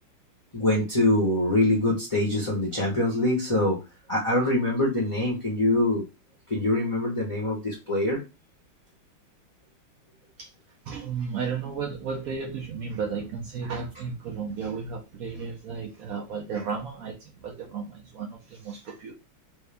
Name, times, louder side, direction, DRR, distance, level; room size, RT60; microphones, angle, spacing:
voice 1, 0.5-3.8 4.1-6.0 6.5-8.2, left 1 dB, 25° left, 0.7 m, -24 dB
voice 2, 10.8-19.1, right 5 dB, 80° right, 0.7 m, -34 dB
3.4 x 2.6 x 3.4 m
omnidirectional pair, 2.3 m